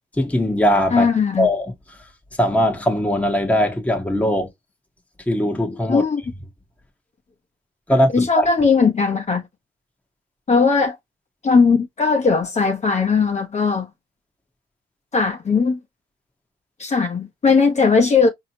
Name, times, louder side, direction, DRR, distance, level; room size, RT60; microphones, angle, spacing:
voice 1, 0.2-1.1 1.4-1.7 2.4-4.5 5.3-6.0 7.9-8.5, equal, 5° left, 1.1 m, -20 dB
voice 2, 0.9-1.5 5.9-6.2 8.1-9.4 10.5-11.0 11.4-13.9 15.1-15.8 16.8-18.3, left 5 dB, 35° left, 1.0 m, -18 dB
4.7 x 2.8 x 2.9 m
cardioid pair, 90°, 20 cm